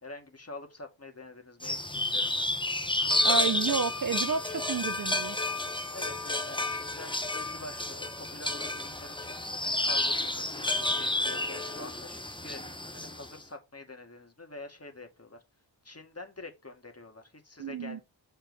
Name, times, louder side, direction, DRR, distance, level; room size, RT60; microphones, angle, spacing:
voice 1, 0.0-2.5 5.9-9.3 9.6-15.4 15.8-18.0, left 2 dB, 30° left, 2.0 m, -46 dB
sound 1, 1.6-13.3, left 2 dB, 10° left, 0.9 m, -31 dB
voice 2, 3.2-5.4 17.6-18.0, right 6 dB, 45° right, 0.6 m, -31 dB
7.4 x 4.4 x 4.0 m
cardioid pair, 50°, 46 cm